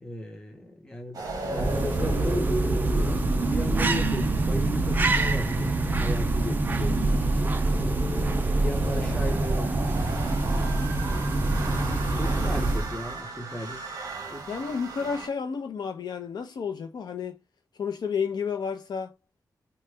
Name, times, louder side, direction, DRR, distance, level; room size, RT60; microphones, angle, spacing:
voice 1, 0.0-1.2 1.5-7.6 8.1-10.7 11.5-13.8 14.3-14.5, left 1 dB, 10° left, 0.7 m, -37 dB
sound 1, 1.1-15.3, right 4 dB, 60° right, 0.9 m, -34 dB
sound 2, 1.3-13.1, right 2 dB, 25° right, 0.4 m, -25 dB
voice 2, 14.5-17.4 17.8-19.1, left 6 dB, 80° left, 0.6 m, -31 dB
2.9 x 2.2 x 3.2 m
wide cardioid pair, 175°, 7 cm